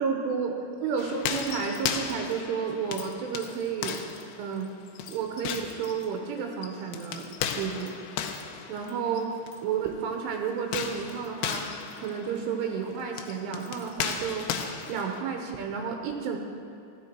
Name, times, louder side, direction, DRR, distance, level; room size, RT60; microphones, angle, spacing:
voice 1, 0.0-4.0 4.4-4.8 5.1-7.9 8.7-11.7 12.0-14.5 14.9-16.4, right 6 dB, 85° right, 2 dB, 3.4 m, -31 dB
sound 1, 1.0-9.6 10.6-15.2, left 8 dB, 85° left, 2.4 m, -36 dB
15.0 x 12.0 x 4.5 m, 2.5 s
omnidirectional pair, 5.8 m